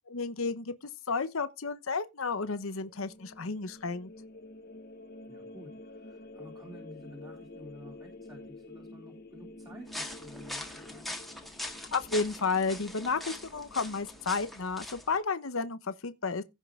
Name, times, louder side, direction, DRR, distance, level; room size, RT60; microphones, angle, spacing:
voice 1, 0.1-0.7 1.1-4.1 11.9-16.4, left 4 dB, 90° left, 0.9 m, -32 dB
sound 1, 2.5-14.3, left 2 dB, 50° left, 1.1 m, -49 dB
voice 2, 5.3-11.1, left 1 dB, 20° right, 2.6 m, -51 dB
sound 2, 9.9-15.2, left 1 dB, ahead, 1.6 m, -42 dB
16.0 x 5.5 x 3.6 m
head